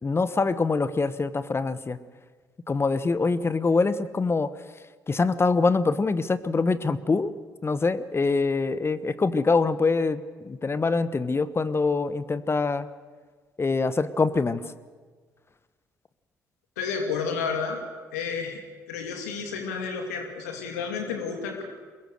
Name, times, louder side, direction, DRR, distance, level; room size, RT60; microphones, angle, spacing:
voice 1, 0.0-2.0 2.7-4.5 5.1-7.3 7.6-12.9 13.6-14.6, left 4 dB, 30° left, 14 dB, 1.2 m, -24 dB
voice 2, 16.8-17.8 18.1-18.6 18.9-21.6, left 5 dB, 85° left, 3 dB, 2.6 m, -31 dB
23.0 x 21.5 x 6.6 m, 1.5 s
hypercardioid pair, 50°, 8 cm